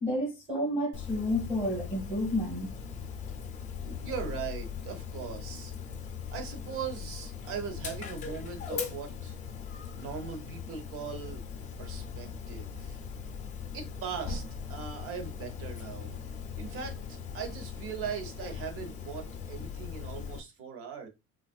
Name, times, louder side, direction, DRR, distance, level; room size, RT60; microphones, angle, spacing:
voice 1, 0.0-2.7, left 1 dB, 5° right, 0.9 m, -30 dB
Dog, 0.9-20.4, left 6 dB, 25° left, 0.4 m, -40 dB
voice 2, 3.9-5.7 6.3-9.4 9.9-11.4 11.8-13.0 13.7-14.4 14.7-16.2 16.5-21.1, right 7 dB, 45° right, 0.8 m, -40 dB
3.4 x 2.4 x 2.3 m
cardioid pair, 160°, 32 cm